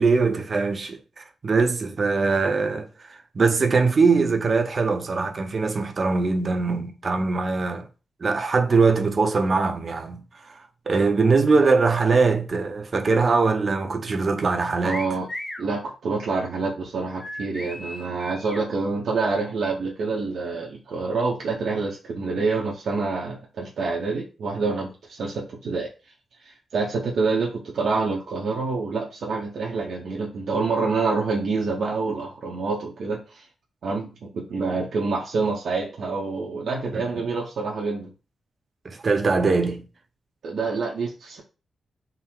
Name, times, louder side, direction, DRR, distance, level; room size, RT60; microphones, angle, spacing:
voice 1, 0.0-2.9 3.3-7.9 8.2-10.6 10.9-15.0 36.9-37.3 38.8-39.9, right 4 dB, 40° right, 0.6 m, -22 dB
voice 2, 14.8-15.3 15.6-25.9 26.4-33.4 33.8-38.1 40.4-41.4, right 4 dB, 75° right, 0.7 m, -27 dB
sound 1, 14.9-15.7 17.2-18.7, left 1 dB, 10° left, 0.6 m, -36 dB
3.7 x 2.0 x 4.4 m
wide cardioid pair, 120°, 0 cm